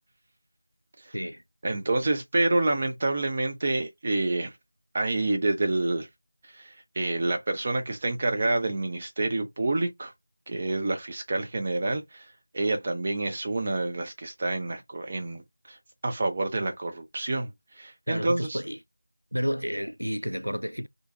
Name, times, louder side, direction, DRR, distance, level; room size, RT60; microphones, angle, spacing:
voice 1, 1.6-4.5 4.9-6.1 6.5-10.1 10.5-12.3 12.5-15.4 15.7-15.8 16.0-18.6, right 2 dB, 25° right, 0.5 m, -28 dB
voice 2, 18.1-18.8 19.3-20.9, equal, 90° right, 0.3 m, -31 dB
2.5 x 2.2 x 3.7 m
figure-of-eight pair, 170°, 0 cm